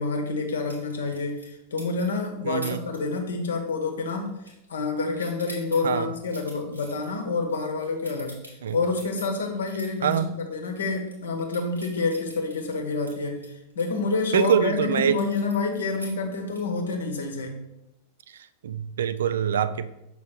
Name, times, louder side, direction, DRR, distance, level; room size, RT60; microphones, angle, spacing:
voice 1, 0.0-4.3 4.7-8.4 8.7-13.4 13.7-17.6, left 3 dB, 65° left, 4 dB, 1.0 m, -28 dB
sound 1, 0.7-1.5 1.8-2.2 2.6-3.0 3.3-3.6 3.9-4.9 5.1-10.2 10.6-10.7 11.0-14.6 15.1-16.8, right 1 dB, 90° right, 1.8 m, -44 dB
voice 2, 2.5-2.8 5.8-6.1 8.6-8.8 10.0-10.3 14.3-15.2 18.6-19.9, right 8 dB, 65° right, 13 dB, 0.3 m, -24 dB
6.4 x 3.6 x 4.4 m, 0.90 s
figure-of-eight pair, 90°, 0 cm